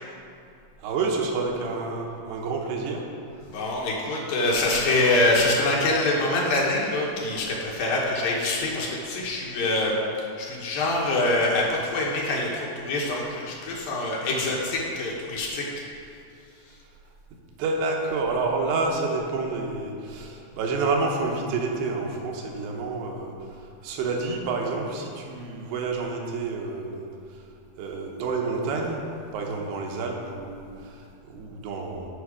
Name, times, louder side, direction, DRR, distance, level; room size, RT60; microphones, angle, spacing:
voice 1, 0.8-3.1 17.6-23.3 23.8-27.0 27.8-29.0 29.3-32.1, right 3 dB, 85° right, 0 dB, 3.0 m, -29 dB
voice 2, 3.5-10.0 10.4-15.6, left 2 dB, 70° left, -3 dB, 2.6 m, -25 dB
10.0 x 5.5 x 4.8 m, 2.5 s
omnidirectional pair, 4.6 m